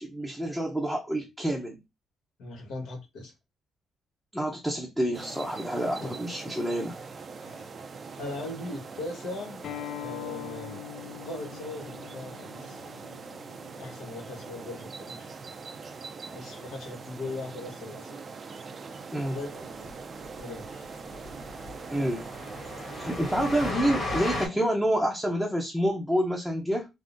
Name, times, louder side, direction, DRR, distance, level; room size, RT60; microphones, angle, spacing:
voice 1, 0.0-1.8 4.3-7.0 19.1-19.4 21.9-22.3 22.9-26.9, right 1 dB, ahead, 0.6 m, -28 dB
voice 2, 2.4-3.3 6.0-6.1 7.4-7.7 8.2-9.6 10.0-10.8 11.2-12.8 13.8-15.4 16.3-18.2 19.3-19.9 20.4-20.9, left 2 dB, 80° left, 1.2 m, -39 dB
sound 1, 5.1-23.7, right 4 dB, 45° right, 0.4 m, -42 dB
Acoustic guitar, 9.6-14.8, left 14 dB, 60° left, 0.5 m, -43 dB
Train, 19.9-20.0 20.2-20.4 20.6-20.7 21.1-24.5, left 2 dB, 40° left, 1.6 m, -35 dB
3.5 x 2.0 x 2.5 m
cardioid pair, 90°, 0 cm